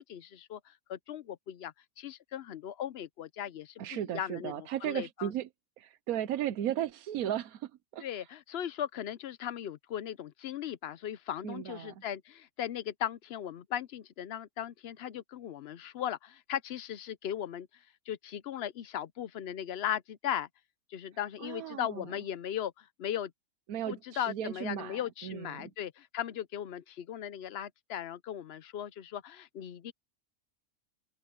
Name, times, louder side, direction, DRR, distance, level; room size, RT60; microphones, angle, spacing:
voice 1, 0.1-5.3 8.0-17.7 18.1-20.5 20.9-23.3 23.9-29.9, left 10 dB, 60° left, 0.7 m, -38 dB
voice 2, 3.8-5.5 5.8-8.3 11.4-11.9 21.4-22.1 23.7-25.7, right 11 dB, 85° right, 1.2 m, -36 dB
open air
omnidirectional pair, 1.5 m